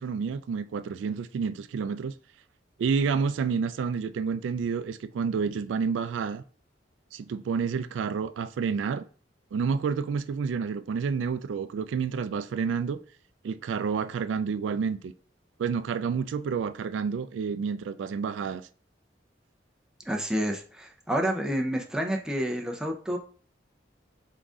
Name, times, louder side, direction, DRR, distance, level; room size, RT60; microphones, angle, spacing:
voice 1, 0.0-2.1 2.8-6.4 7.1-9.0 9.5-13.0 13.4-15.1 15.6-18.7, right 5 dB, 80° right, 0.3 m, -29 dB
voice 2, 20.1-23.2, equal, 5° right, 0.6 m, -29 dB
3.9 x 3.6 x 3.6 m
head